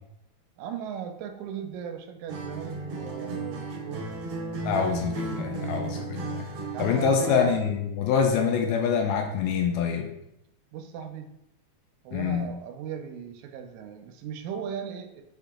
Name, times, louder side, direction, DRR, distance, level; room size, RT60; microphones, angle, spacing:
voice 1, 0.6-4.1 6.7-7.5 10.7-11.3 12.0-15.2, right 7 dB, 85° right, 6 dB, 1.9 m, -38 dB
Acoustic guitar, 2.3-7.7, right 2 dB, 70° right, 1.4 m, -34 dB
voice 2, 4.6-6.4 6.8-10.1 12.1-12.6, left 6 dB, 80° left, 3 dB, 1.8 m, -25 dB
5.0 x 2.8 x 3.5 m, 0.83 s
omnidirectional pair, 3.3 m